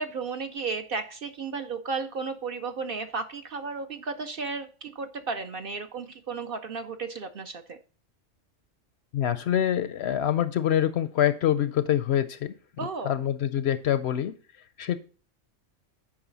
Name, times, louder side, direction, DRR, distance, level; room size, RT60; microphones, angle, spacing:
voice 1, 0.0-7.8 12.8-13.2, right 4 dB, 55° right, 8 dB, 0.7 m, -34 dB
voice 2, 9.1-12.5 13.0-14.3 14.8-15.0, left 10 dB, 65° left, 13 dB, 0.7 m, -25 dB
8.7 x 5.3 x 3.9 m, 0.39 s
omnidirectional pair, 1.4 m